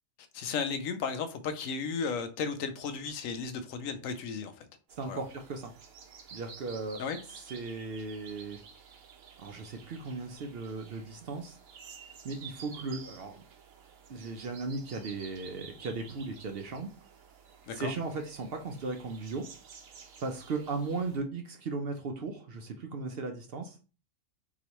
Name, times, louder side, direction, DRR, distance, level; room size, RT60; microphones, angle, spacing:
voice 1, 0.3-4.7 5.1-5.2 7.0-7.2 17.7-17.9, left 5 dB, 80° left, 1.0 m, -34 dB
sound 1, 4.9-21.2, right 6 dB, 85° right, 1.2 m, -52 dB
voice 2, 5.0-5.7 6.3-7.0 7.3-8.6 9.4-11.6 12.2-13.4 14.1-16.9 17.7-19.5 20.2-23.8, right 3 dB, 60° right, 0.7 m, -37 dB
3.9 x 3.0 x 3.0 m
omnidirectional pair, 1.4 m